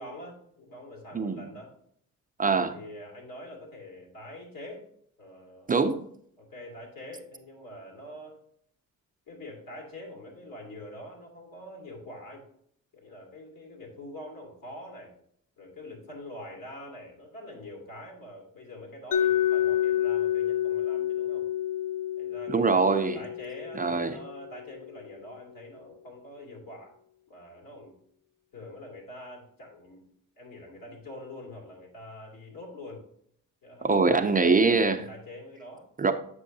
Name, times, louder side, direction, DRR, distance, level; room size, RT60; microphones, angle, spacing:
voice 1, 0.0-1.7 2.7-4.9 5.2-5.7 6.4-8.4 9.3-12.4 12.9-15.1 15.6-21.5 22.2-26.9 27.3-27.9 28.5-30.1 30.4-33.0 33.6-35.9, left 1 dB, 80° left, 2.9 m, -45 dB
voice 2, 2.4-2.7 5.7-6.0 22.5-23.2 23.8-24.2 33.8-35.0 36.0-36.1, right 4 dB, 25° right, 0.4 m, -23 dB
Mallet percussion, 19.1-24.9, left 11 dB, 45° left, 0.4 m, -29 dB
8.4 x 6.2 x 2.7 m
cardioid pair, 110°, 33 cm